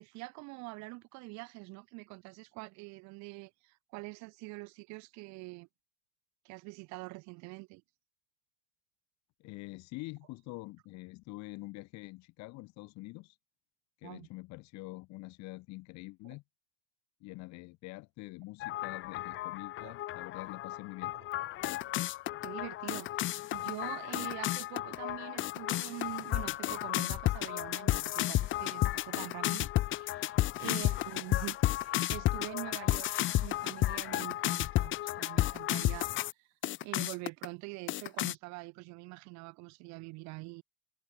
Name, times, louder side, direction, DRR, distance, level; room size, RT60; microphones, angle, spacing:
voice 1, 0.0-5.7 6.4-7.8 14.0-14.3 19.8-19.9 22.4-36.1 36.8-40.6, right 25 dB, 60° right, 1.4 m, -45 dB
voice 2, 9.4-13.4 14.0-16.4 17.2-21.1 26.4-26.6 30.5-30.9, left 22 dB, 60° left, 3.0 m, -46 dB
sound 1, 18.6-36.3 36.6-37.4 37.9-38.3, left 15 dB, 40° left, 0.7 m, -33 dB
supercardioid pair, 120°, 31 cm